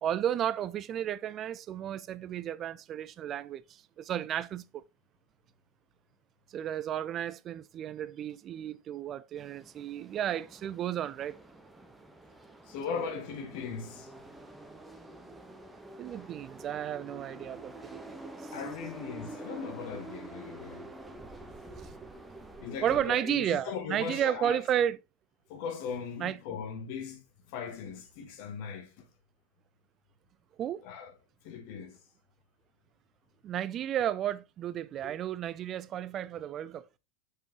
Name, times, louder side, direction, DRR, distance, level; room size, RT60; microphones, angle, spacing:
voice 1, 0.0-4.8 6.5-11.4 12.9-13.1 16.0-18.5 21.7-22.0 22.8-25.0 26.2-26.4 30.6-30.8 33.4-37.0, right 10 dB, 30° right, 0.4 m, -33 dB
sound 1, 9.4-23.2, right 2 dB, 5° right, 1.2 m, -47 dB
voice 2, 12.7-14.1 18.5-20.9 22.6-24.6 25.5-27.2 27.5-29.1 30.8-31.1 31.4-32.0, left 6 dB, 50° left, 1.9 m, -38 dB
7.1 x 6.7 x 3.1 m
figure-of-eight pair, 85°, 0 cm